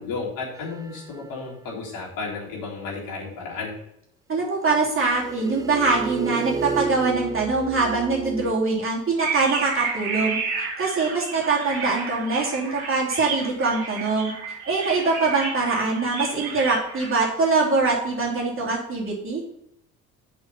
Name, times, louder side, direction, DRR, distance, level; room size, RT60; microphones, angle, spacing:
voice 1, 0.0-3.7, left 4 dB, 50° left, -5 dB, 3.8 m, -33 dB
sound 1, 0.5-1.5 4.9-8.5, right 5 dB, 10° right, 0.3 m, -32 dB
voice 2, 4.3-10.4 10.8-14.3 14.7-19.4, right 3 dB, 30° right, -3 dB, 3.3 m, -23 dB
sound 2, 9.2-17.2, right 4 dB, 55° right, 2.8 m, -31 dB
6.4 x 6.0 x 6.8 m, 0.77 s
figure-of-eight pair, 60°, 44 cm